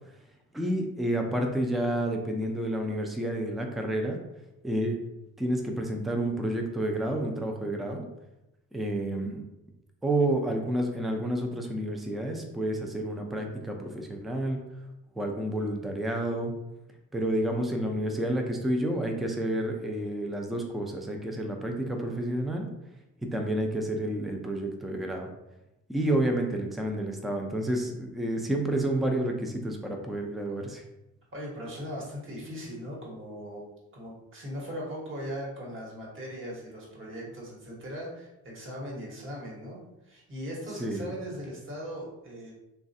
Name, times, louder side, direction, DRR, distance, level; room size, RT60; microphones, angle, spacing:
voice 1, 0.5-4.2 4.6-5.0 5.4-8.1 8.7-9.4 10.0-14.6 15.2-16.5 17.1-22.7 23.2-25.3 25.9-30.8 40.8-41.1, right 1 dB, ahead, 3 dB, 0.4 m, -30 dB
voice 2, 31.3-33.7 33.9-42.5, equal, 45° right, -4 dB, 1.2 m, -39 dB
3.1 x 2.3 x 2.6 m, 0.91 s
cardioid pair, 90°, 30 cm